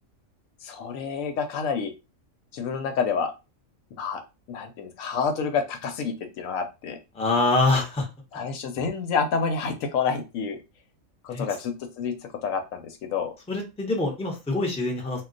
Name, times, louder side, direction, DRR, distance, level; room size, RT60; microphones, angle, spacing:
voice 1, 0.6-1.9 2.5-3.3 3.9-4.2 4.5-7.0 8.3-10.6 11.2-13.3, left 5 dB, 85° left, 6 dB, 1.0 m, -28 dB
voice 2, 7.1-8.1 8.3-8.4 11.3-11.4 13.5-15.2, left 2 dB, 5° left, -1 dB, 0.5 m, -25 dB
2.3 x 2.2 x 3.8 m, 0.26 s
omnidirectional pair, 1.4 m